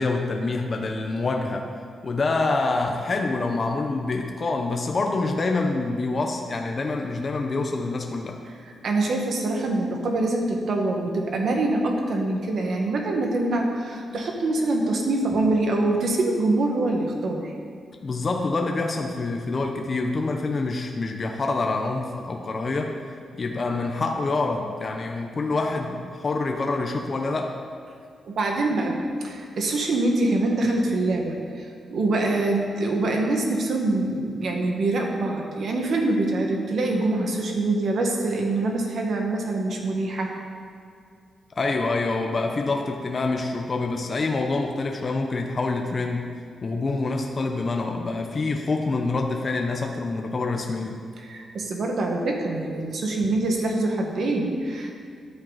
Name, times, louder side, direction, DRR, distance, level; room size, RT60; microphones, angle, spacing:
voice 1, 0.0-1.7 2.0-8.4 18.0-23.0 23.4-27.6 41.6-46.3 46.6-51.0, left 3 dB, 30° left, 2 dB, 0.8 m, -26 dB
voice 2, 8.7-17.5 28.3-29.0 29.2-40.3 51.2-55.0, right 2 dB, 50° right, 1 dB, 1.7 m, -24 dB
14.0 x 10.5 x 4.1 m, 2.3 s
wide cardioid pair, 170°, 0 cm